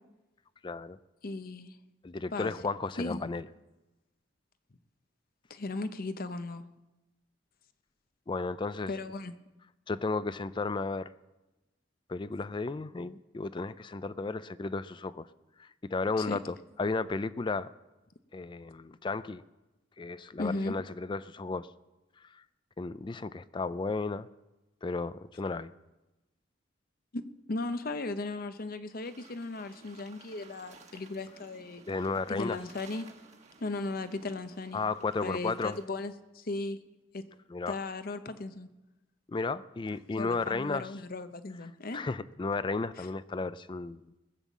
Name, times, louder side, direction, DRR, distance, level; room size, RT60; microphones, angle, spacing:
voice 1, 0.6-1.0 2.0-3.5 8.3-8.9 9.9-11.1 12.1-15.3 15.6-17.7 18.3-19.4 20.0-21.7 22.3-22.4 22.8-24.3 24.8-25.7 31.9-32.6 34.7-35.8 37.5-37.8 39.3-40.9 41.9-44.2, left 3 dB, 25° left, 15 dB, 0.4 m, -34 dB
voice 2, 1.2-1.8 2.3-2.5 3.0-3.3 5.5-6.6 8.9-9.3 16.2-16.4 20.4-20.7 27.1-31.8 32.3-33.1 33.6-34.8 35.2-36.8 37.1-37.2 37.7-38.7 40.2-42.0 43.0-43.1, left 2 dB, 50° left, 11 dB, 0.8 m, -36 dB
sound 1, 29.0-35.9, right 4 dB, 40° right, 1.3 m, -56 dB
20.0 x 7.2 x 7.3 m, 1.0 s
head